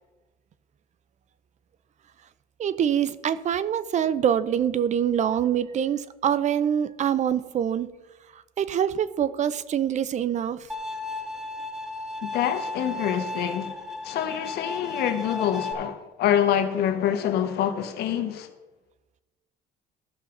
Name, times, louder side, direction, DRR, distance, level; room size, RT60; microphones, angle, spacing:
voice 1, 2.6-7.9 8.6-10.6, right 9 dB, 45° right, 0.5 m, -25 dB
Bowed string instrument, 10.7-15.7, left 2 dB, 5° right, 1.1 m, -34 dB
voice 2, 12.2-13.7 14.0-18.5, left 10 dB, 75° left, 1.1 m, -26 dB
15.0 x 5.7 x 3.9 m
cardioid pair, 110°, 17 cm